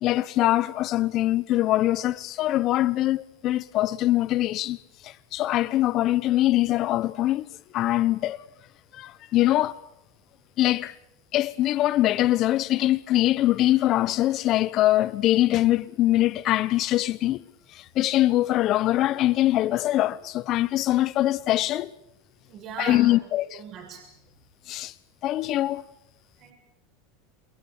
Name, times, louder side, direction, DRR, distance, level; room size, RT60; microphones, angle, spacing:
voice 1, 0.0-4.8 5.0-7.4 7.7-8.4 8.9-9.7 10.6-10.9 11.3-17.4 17.7-21.9 22.8-23.4 24.7-24.9 25.2-25.8, left 15 dB, 45° left, 1.0 m, -23 dB
voice 2, 22.5-23.2 23.5-24.1 26.4-26.5, right 6 dB, 45° right, 7.4 m, -38 dB
28.0 x 21.5 x 6.9 m
supercardioid pair, 110°, 0 cm